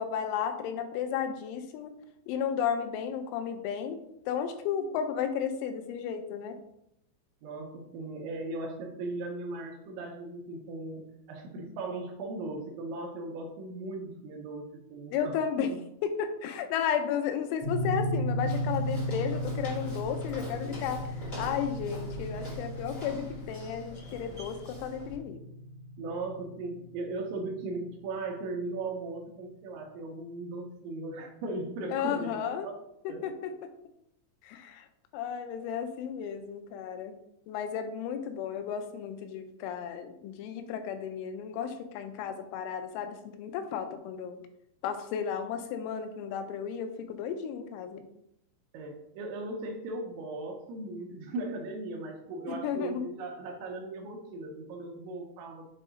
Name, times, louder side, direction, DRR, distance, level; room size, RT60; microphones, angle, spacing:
voice 1, 0.0-1.9 2.3-6.6 15.1-15.7 16.0-21.0 21.4-25.4 31.9-32.7 33.1-33.5 34.4-34.9 35.1-37.1 37.5-44.4 44.8-48.0 52.5-53.0, left 8 dB, 85° left, 7 dB, 3.0 m, -33 dB
voice 2, 7.4-11.0 11.3-14.7 14.9-15.8 26.0-32.8 33.1-33.3 48.7-55.7, right 2 dB, 80° right, 2 dB, 3.0 m, -38 dB
sound 1, 17.6-27.8, equal, 65° left, 1.4 m, -36 dB
Walk footsteps, 18.5-25.2, equal, 25° left, 1.3 m, -45 dB
7.5 x 2.7 x 4.8 m, 0.77 s
omnidirectional pair, 5.5 m